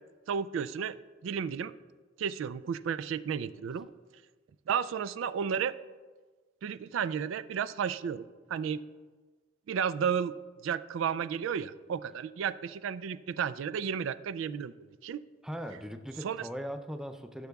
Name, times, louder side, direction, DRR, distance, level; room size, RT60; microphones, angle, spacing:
voice 1, 0.3-1.0 1.2-1.7 2.2-3.9 4.7-5.8 6.6-8.2 8.5-8.8 9.7-10.4 10.6-14.7 15.0-15.2 16.2-16.4, right 7 dB, 85° right, 14 dB, 0.3 m, -32 dB
voice 2, 15.4-17.5, equal, 5° right, 7 dB, 0.4 m, -39 dB
18.5 x 7.0 x 2.3 m, 1.4 s
head